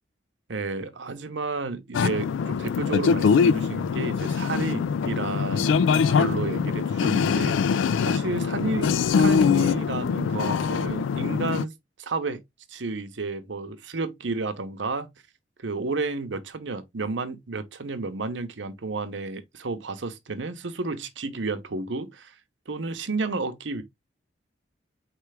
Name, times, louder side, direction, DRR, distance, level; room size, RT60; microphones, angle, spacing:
voice 1, 0.5-5.7 6.1-11.7 12.0-12.4 12.7-15.1 15.6-22.3 22.7-23.8, right 3 dB, 75° right, 0.8 m, -31 dB
sound 1, 1.9-11.6, left 6 dB, 85° left, 0.3 m, -23 dB
4.5 x 3.3 x 3.3 m
head